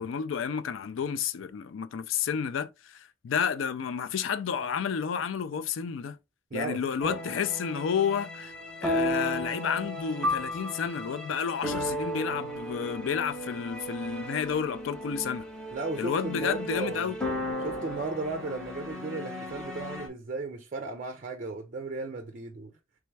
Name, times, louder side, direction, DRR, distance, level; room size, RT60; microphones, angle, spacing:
voice 1, 0.0-6.2 6.5-8.5 8.8-15.4 16.0-17.2, left 7 dB, 75° left, 0.4 m, -31 dB
voice 2, 6.5-6.8 7.1-7.2 15.7-17.1 17.6-22.7, right 3 dB, 40° right, 0.5 m, -35 dB
sound 1, 7.0-20.1, left 1 dB, 5° left, 0.9 m, -34 dB
3.4 x 3.3 x 3.2 m
head